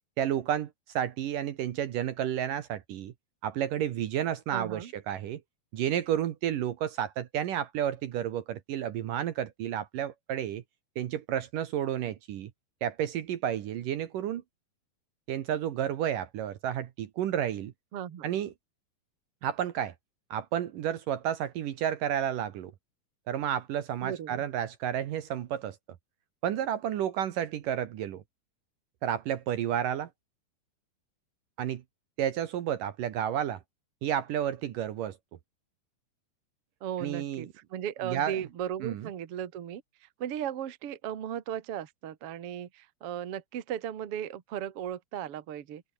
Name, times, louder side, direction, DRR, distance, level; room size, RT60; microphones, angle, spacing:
voice 1, 0.2-3.1 3.4-5.4 5.7-10.6 11.0-12.5 12.8-14.4 15.3-17.7 18.2-18.5 19.4-19.9 20.3-22.7 23.3-25.8 26.4-28.2 29.0-30.1 31.6-31.8 32.2-33.6 34.0-35.2 37.0-37.5 38.0-38.4 38.8-39.1, right 10 dB, 65° right, 2.6 m, -31 dB
voice 2, 4.5-4.9 17.9-18.3 24.0-24.4 36.8-45.8, right 10 dB, 50° right, 2.0 m, -36 dB
open air
omnidirectional pair, 4.5 m